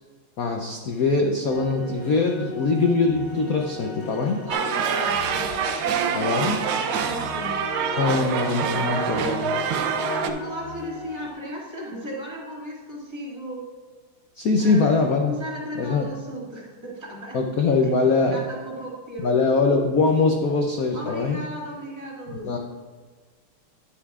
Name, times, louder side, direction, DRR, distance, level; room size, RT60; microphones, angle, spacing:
voice 1, 0.4-4.5 6.1-6.6 8.0-9.5 14.4-15.4 15.7-16.1 17.3-18.4 19.2-21.4 22.3-22.6, left 4 dB, 75° left, 2 dB, 0.8 m, -22 dB
sound 1, 1.5-11.3, left 2 dB, 45° left, 1.7 m, -38 dB
voice 2, 4.4-8.3 8.8-9.4 10.1-13.7 14.6-14.9 15.3-17.4 17.8-17.9 18.3-19.3 20.9-22.6, equal, 15° right, -5 dB, 1.7 m, -36 dB
sound 2, 4.5-10.3, right 6 dB, 80° right, 1.5 m, -25 dB
11.5 x 10.0 x 2.4 m, 1.5 s
omnidirectional pair, 2.4 m